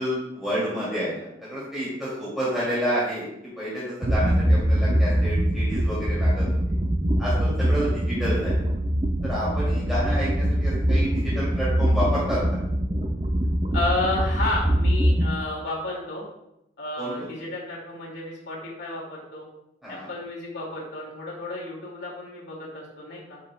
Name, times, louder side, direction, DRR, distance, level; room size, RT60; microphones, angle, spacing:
voice 1, 0.0-3.3 3.6-6.5 7.2-8.7 9.2-12.4 17.0-17.3 19.8-20.1, equal, ahead, -10 dB, 2.4 m, -29 dB
sound 1, 4.0-15.3, equal, 30° right, 0.6 m, -23 dB
voice 2, 13.7-16.2 16.8-19.5 19.9-23.4, left 2 dB, 70° left, -3 dB, 2.1 m, -31 dB
9.5 x 5.6 x 2.2 m, 0.83 s
head